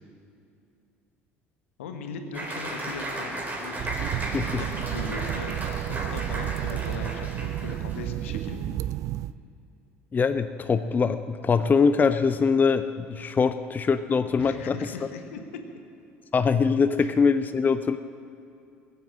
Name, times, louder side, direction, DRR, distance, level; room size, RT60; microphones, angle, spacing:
voice 1, 1.8-3.3 3.6-3.7 4.3-5.5 5.9-8.9 14.4-15.4 17.0-17.1, left 4 dB, 70° left, 6 dB, 1.4 m, -39 dB
Applause, 2.3-8.1, right 1 dB, 25° right, 3.9 m, -35 dB
sound 1, 3.8-9.3, right 13 dB, 50° right, 0.4 m, -31 dB
voice 2, 10.1-14.9 16.3-18.0, left 5 dB, 25° left, 11 dB, 0.5 m, -23 dB
21.0 x 8.2 x 7.5 m, 2.6 s
figure-of-eight pair, 60°, 7 cm